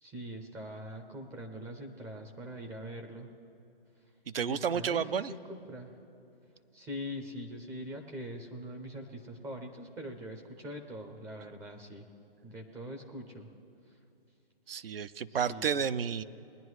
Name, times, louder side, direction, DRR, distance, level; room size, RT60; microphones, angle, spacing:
voice 1, 0.0-3.3 4.4-5.9 6.7-12.0 12.4-13.5 15.5-15.7, equal, 10° right, 3 dB, 0.5 m, -43 dB
voice 2, 4.3-5.3 14.7-16.2, right 7 dB, 70° right, 13 dB, 0.6 m, -31 dB
20.5 x 10.5 x 3.2 m, 2.6 s
figure-of-eight pair, 135°, 30 cm